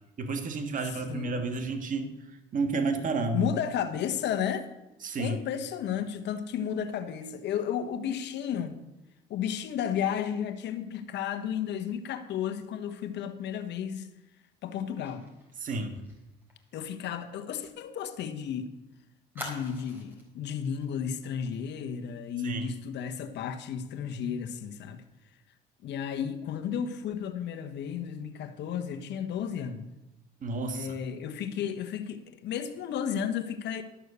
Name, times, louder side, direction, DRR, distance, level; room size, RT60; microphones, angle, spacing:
voice 1, 0.2-2.1 2.5-3.5 5.0-5.4 15.6-16.0 22.4-22.8 30.4-30.9, right 3 dB, 45° right, 1.7 m, -31 dB
voice 2, 0.8-1.4 3.3-4.7 5.2-8.8 9.3-14.1 14.6-15.2 16.7-18.7 19.3-25.0 25.8-29.9 30.7-33.8, left 8 dB, 65° left, 1.2 m, -33 dB
Fire, 15.1-18.5 18.8-18.9 19.4-20.3 20.7-20.9 21.2-21.5, equal, 10° right, 4.2 m, -46 dB
12.5 x 6.5 x 6.8 m
supercardioid pair, 90°, 19 cm